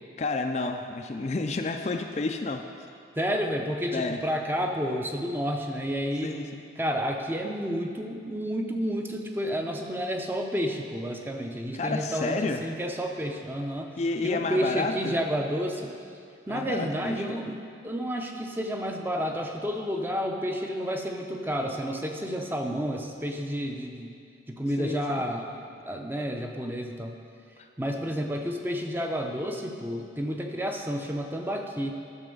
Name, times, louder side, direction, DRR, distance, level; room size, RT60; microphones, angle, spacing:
voice 1, 0.2-2.6 3.9-4.2 6.2-6.6 11.7-12.6 14.0-15.2 16.5-17.4 24.8-25.2 27.6-27.7, left 3 dB, 35° left, 5 dB, 0.4 m, -30 dB
voice 2, 3.2-6.3 6.8-13.9 14.2-15.9 16.5-24.1 24.5-27.2 27.8-31.9, equal, 10° right, 3 dB, 0.6 m, -30 dB
11.0 x 7.0 x 5.3 m, 2.4 s
head